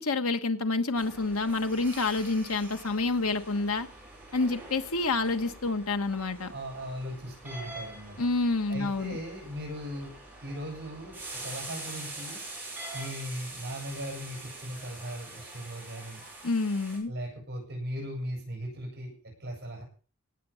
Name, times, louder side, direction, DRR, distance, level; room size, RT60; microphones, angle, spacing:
voice 1, 0.0-3.9 4.3-6.5 8.2-9.2 16.4-17.1, left 3 dB, 80° left, 9 dB, 1.3 m, -28 dB
sound 1, 1.0-17.0, right 2 dB, 10° right, 5.6 m, -44 dB
voice 2, 6.4-8.3 8.7-10.1 10.4-12.4 12.9-16.2 17.0-19.8, equal, 50° right, 1 dB, 7.4 m, -38 dB
18.5 x 6.9 x 7.0 m, 0.39 s
head